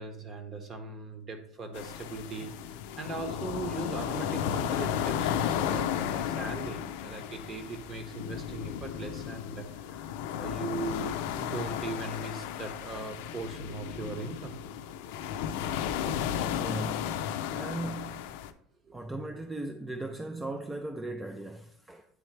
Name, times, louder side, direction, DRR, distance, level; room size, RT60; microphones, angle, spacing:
voice 1, 0.0-10.1 10.4-14.6 18.8-19.0, right 3 dB, 30° right, 1.1 m, -39 dB
sound 1, 1.7-18.5, left 9 dB, 75° left, 0.4 m, -34 dB
voice 2, 16.5-17.2 17.5-18.4 18.9-22.1, right 2 dB, 10° right, 0.4 m, -37 dB
9.5 x 3.2 x 3.1 m
supercardioid pair, 110°, 0 cm